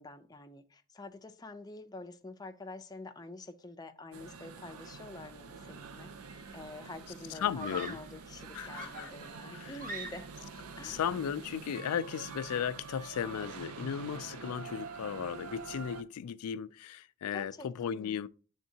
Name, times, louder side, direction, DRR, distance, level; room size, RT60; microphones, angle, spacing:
voice 1, 0.0-10.3 10.8-11.0 17.3-18.2, left 2 dB, 15° left, 0.4 m, -47 dB
sound 1, 4.1-16.0, right 5 dB, 75° right, 0.6 m, -46 dB
Screaming, 6.2-6.5 7.6-8.2 8.8-10.5, right 2 dB, 40° right, 0.7 m, -44 dB
voice 2, 7.4-8.0 8.5-9.1 9.5-9.8 10.8-18.3, left 8 dB, 85° left, 0.3 m, -36 dB
10.5 x 3.6 x 2.7 m
head